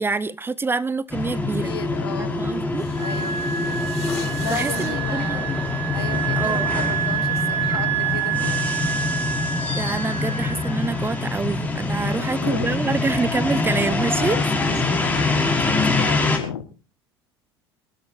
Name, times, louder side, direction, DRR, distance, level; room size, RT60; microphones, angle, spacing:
voice 1, 0.0-1.7 2.2-2.9 4.4-5.5 6.3-6.7 7.7-7.8 9.7-14.4, right 4 dB, 15° right, 0.8 m, -26 dB
sound 1, 1.1-16.4, left 3 dB, 10° left, 5.1 m, -25 dB
voice 2, 1.6-2.5 3.0-3.8 4.1-5.6 5.9-9.1 12.0-12.8 14.2-16.7, left 9 dB, 80° left, 1.7 m, -35 dB
sound 2, 2.8-6.9, left 11 dB, 55° left, 6.0 m, -42 dB
Wind instrument woodwind instrument, 3.0-11.3, right 10 dB, 50° right, 4.2 m, -28 dB
26.0 x 13.0 x 2.7 m
figure-of-eight pair, 70°, 13 cm